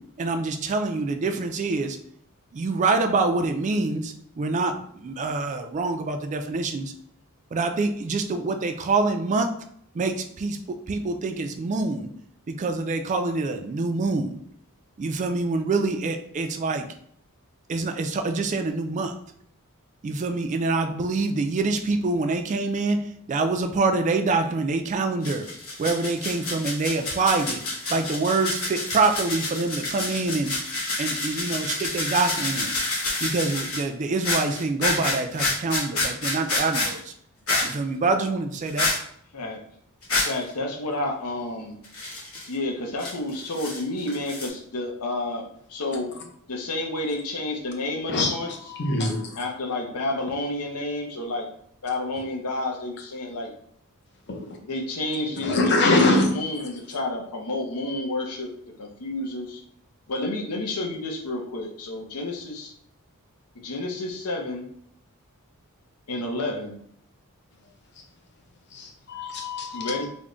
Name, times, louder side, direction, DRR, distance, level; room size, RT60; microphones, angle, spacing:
voice 1, 0.2-2.0 2.5-6.9 7.5-9.5 9.9-10.6 10.9-12.1 12.5-14.4 15.0-16.9 17.7-19.1 20.0-23.0 23.3-25.4 25.8-27.6 27.9-30.5 31.0-32.8 33.2-37.1 37.6-38.9, right 3 dB, 35° right, 0.3 m, -25 dB
sound 1, 25.2-33.8 34.1-37.0 37.5-37.7 38.7-39.0 40.0-40.4 41.8-42.5 43.0-43.8 44.1-44.5, left 2 dB, 65° left, 1.1 m, -28 dB
voice 2, 40.2-41.8 42.5-46.1 46.5-48.7 49.4-51.5 51.8-53.5 54.6-58.5 58.8-59.6 60.1-62.7 63.5-64.7 66.1-66.8 69.7-70.1, left 2 dB, 85° left, 0.7 m, -30 dB
voice 3, 48.8-49.2 54.3-54.4 55.4-56.3 69.1-70.0, left 2 dB, 50° left, 0.7 m, -22 dB
3.5 x 2.1 x 3.7 m
head